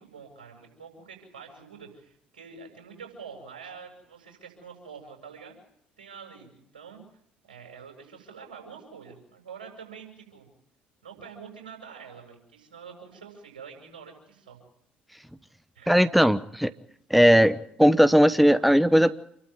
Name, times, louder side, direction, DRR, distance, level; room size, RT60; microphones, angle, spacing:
voice 1, 0.0-5.6 6.0-7.0 7.5-10.5 11.0-14.6 15.7-16.1, right 6 dB, 85° right, 3 dB, 7.7 m, -46 dB
voice 2, 15.9-16.7 17.1-19.1, equal, ahead, 14 dB, 1.0 m, -18 dB
28.5 x 13.0 x 9.5 m, 0.71 s
hypercardioid pair, 55°, 5 cm